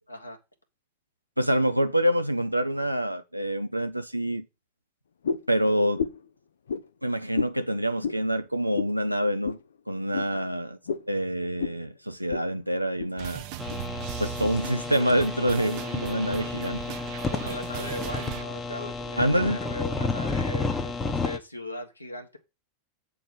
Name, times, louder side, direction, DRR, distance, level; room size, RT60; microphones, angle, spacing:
voice 1, 1.4-4.5 5.5-6.0 7.0-9.6 9.9-10.8 11.1-13.4 14.2-16.8 19.2-19.6, equal, 90° right, 0.5 m, -26 dB
sound 1, 5.2-5.5 6.0-6.3 6.7-6.9 7.3-7.6 8.0-8.2 8.7-9.0 9.4-9.6 10.1-10.3 10.9-11.1 11.6-11.8 12.3-12.5 12.8-13.1 13.7-13.8 14.4-14.5, left 6 dB, 65° left, 0.5 m, -30 dB
voice 2, 10.1-10.5 17.3-22.4, left 1 dB, 85° left, 1.3 m, -38 dB
sound 2, 13.2-18.4, right 12 dB, 45° right, 0.8 m, -38 dB
sound 3, 13.6-21.4, left 4 dB, 20° left, 1.0 m, -32 dB
7.6 x 3.9 x 6.1 m
figure-of-eight pair, 90°, 0 cm